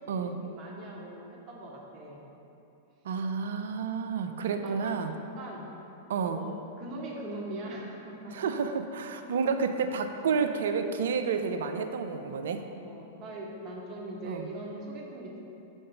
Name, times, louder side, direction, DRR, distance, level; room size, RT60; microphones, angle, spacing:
voice 1, 0.0-2.3 4.1-5.7 6.2-8.5 12.8-15.4, right 1 dB, 40° right, -2 dB, 1.1 m, -41 dB
voice 2, 3.1-5.1 6.1-6.5 8.3-12.6 14.2-14.5, right 5 dB, 70° right, 7 dB, 0.4 m, -30 dB
5.3 x 3.8 x 5.6 m, 2.9 s
hypercardioid pair, 100°, 0 cm